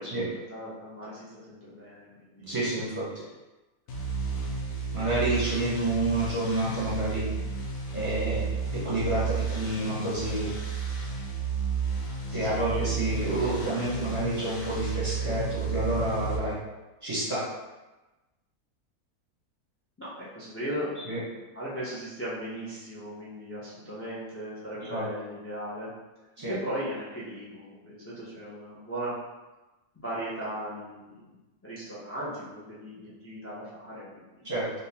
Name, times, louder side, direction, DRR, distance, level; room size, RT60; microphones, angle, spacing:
voice 1, 0.0-2.6 12.3-13.1 20.0-20.9 21.3-25.9 26.5-29.2 29.9-31.3 31.6-34.4, equal, 20° left, -8 dB, 0.3 m, -38 dB
voice 2, 2.4-3.1 4.9-7.2 7.9-8.4 8.7-10.5 12.3-16.5 17.0-17.4 21.1-21.2 24.9-25.0 26.4-26.5 34.4-34.7, right 1 dB, 25° right, -9 dB, 0.8 m, -29 dB
sound 1, 3.9-16.4, right 5 dB, 70° left, 1.1 m, -32 dB
3.6 x 2.6 x 2.8 m, 1.1 s
omnidirectional pair, 1.6 m